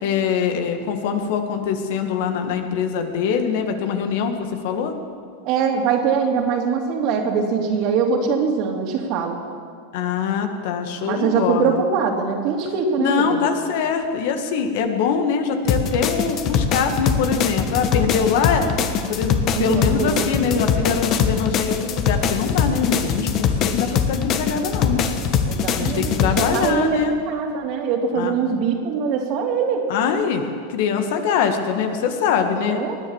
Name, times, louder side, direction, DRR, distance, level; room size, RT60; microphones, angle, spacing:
voice 1, 0.0-4.4 4.6-5.0 9.9-11.8 13.0-18.7 19.1-25.0 25.8-27.1 28.1-28.3 29.9-30.4 30.7-32.8, left 6 dB, 65° left, 6 dB, 1.8 m, -23 dB
voice 2, 5.4-9.4 11.0-13.4 19.5-20.3 25.5-27.0 27.3-29.9 32.5-33.0, right 6 dB, 50° right, 2 dB, 2.9 m, -22 dB
sound 1, 15.7-26.7, left 7 dB, 45° left, 1.4 m, -22 dB
20.0 x 9.9 x 7.3 m, 2.1 s
hypercardioid pair, 110°, 0 cm